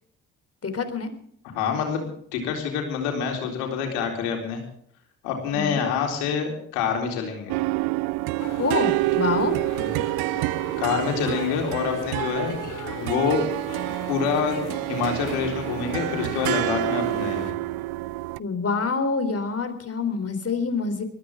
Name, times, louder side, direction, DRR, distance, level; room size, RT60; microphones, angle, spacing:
voice 1, 0.6-1.1 5.5-5.8 8.6-9.6 18.4-21.0, left 4 dB, 40° left, 8 dB, 3.6 m, -26 dB
voice 2, 1.5-4.6 5.2-7.6 9.7-10.0 10.8-13.5 14.1-14.6 14.9-17.6, left 6 dB, 85° left, 2 dB, 4.0 m, -26 dB
sound 1, 7.5-18.4, right 21 dB, 80° right, 0.5 m, -28 dB
sound 2, 8.4-17.5, left 6 dB, 55° left, 2.8 m, -39 dB
21.0 x 14.5 x 3.7 m, 0.63 s
hypercardioid pair, 45°, 36 cm